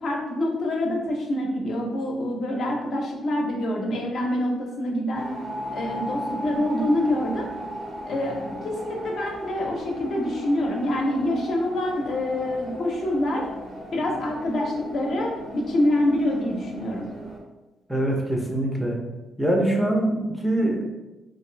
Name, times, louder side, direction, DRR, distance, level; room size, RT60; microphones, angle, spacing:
voice 1, 0.0-5.3 5.7-7.5 8.0-13.5 13.9-17.1, left 1 dB, 60° left, 0 dB, 0.6 m, -26 dB
sound 1, 5.1-17.4, equal, 70° right, 0.9 m, -37 dB
voice 2, 17.9-19.0 19.4-20.9, right 1 dB, ahead, 0 dB, 0.6 m, -23 dB
2.5 x 2.4 x 3.2 m, 1.1 s
cardioid pair, 90°, 0 cm